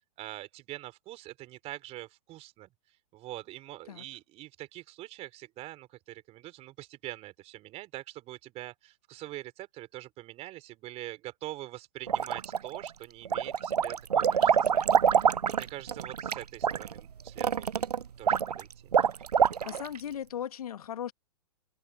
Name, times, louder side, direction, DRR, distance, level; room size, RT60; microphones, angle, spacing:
voice 1, 0.2-2.7 3.1-14.8 15.2-19.1, right 16 dB, 35° right, 4.0 m, -44 dB
sound 1, 12.1-12.9 13.3-20.0, right 7 dB, 90° right, 0.6 m, -26 dB
voice 2, 19.7-21.1, left 9 dB, 70° left, 1.8 m, -37 dB
open air
hypercardioid pair, 115°, 19 cm